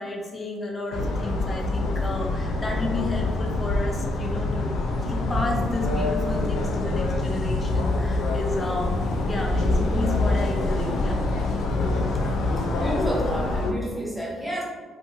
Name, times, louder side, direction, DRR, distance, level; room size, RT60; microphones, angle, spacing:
voice 1, 0.0-11.2, left 2 dB, 25° left, -1 dB, 0.6 m, -32 dB
sound 1, 0.9-13.7, left 2 dB, 80° left, 0.3 m, -25 dB
voice 2, 12.7-14.6, equal, 5° right, -5 dB, 0.8 m, -30 dB
2.8 x 2.2 x 2.7 m, 1.5 s
cardioid pair, 90°, 0 cm